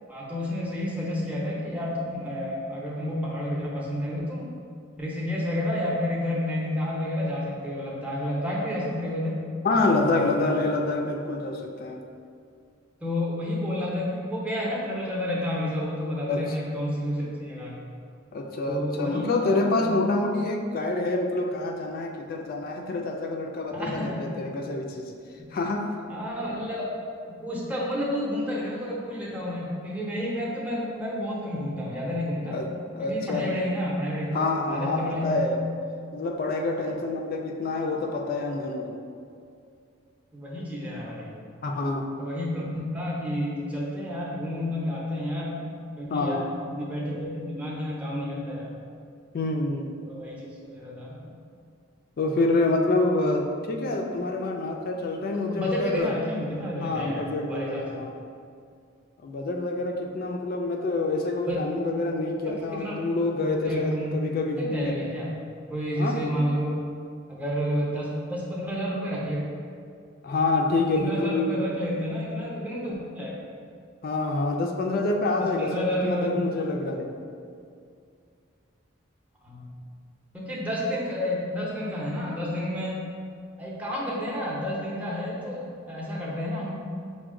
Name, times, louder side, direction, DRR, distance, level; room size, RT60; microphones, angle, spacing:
voice 1, 0.1-4.5 5.0-9.4 10.0-10.5 13.0-17.9 18.7-20.0 23.7-24.3 26.1-26.8 27.2-32.6 33.0-35.4 40.3-41.4 42.2-48.7 50.0-51.2 55.3-57.8 61.5-61.6 62.5-63.0 63.6-64.1 64.6-65.3 65.7-66.8 67.3-69.4 71.0-73.4 75.4-76.3 79.4-79.8 80.3-83.1 83.6-86.7, left 1 dB, 5° right, -5 dB, 0.6 m, -30 dB
voice 2, 9.6-12.0 16.3-16.6 18.3-25.1 25.5-25.9 32.5-33.6 34.3-35.6 36.1-39.0 41.6-42.1 46.1-46.4 49.3-49.9 52.2-56.2 56.8-58.2 59.2-65.0 66.0-66.8 70.2-71.7 74.0-77.1, left 2 dB, 45° left, 2 dB, 0.3 m, -27 dB
5.7 x 2.2 x 3.6 m, 2.3 s
head